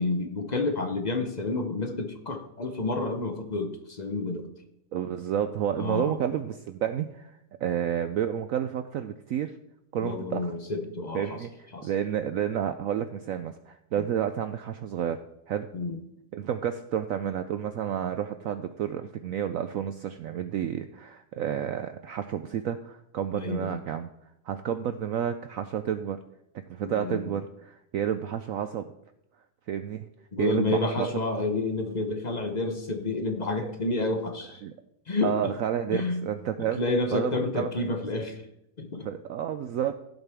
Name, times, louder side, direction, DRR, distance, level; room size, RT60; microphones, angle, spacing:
voice 1, 0.0-4.5 5.8-6.2 10.0-11.4 11.7-11.9 15.7-16.0 23.3-23.8 26.8-27.4 30.3-34.6 35.1-35.3 35.9-36.3 36.6-38.4 38.8-39.1, left 2 dB, 45° left, 6 dB, 0.5 m, -30 dB
voice 2, 4.9-9.5 9.9-10.5 11.1-15.2 15.5-15.7 16.3-24.1 24.5-26.2 26.7-28.9 29.7-30.1 30.4-31.1 33.6-33.7 34.6-34.7 35.2-36.8 37.1-37.8 39.0-40.0, right 9 dB, 80° right, 9 dB, 0.7 m, -30 dB
15.5 x 8.1 x 3.5 m, 0.83 s
omnidirectional pair, 1.9 m